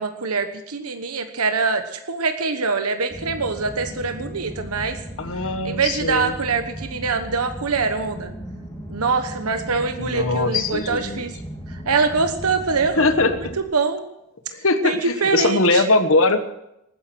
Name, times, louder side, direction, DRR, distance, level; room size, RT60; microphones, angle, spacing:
voice 1, 0.0-5.0 5.6-8.3 8.9-11.3 11.7-13.3 13.6-14.0 14.8-15.8, right 4 dB, 85° right, 7 dB, 1.2 m, -24 dB
sound 1, 3.1-13.6, right 1 dB, 15° left, 2.7 m, -36 dB
voice 2, 5.2-6.3 10.0-11.2 13.0-13.6 14.5-16.4, left 2 dB, 65° left, 10 dB, 1.2 m, -21 dB
19.5 x 9.6 x 6.2 m, 0.85 s
head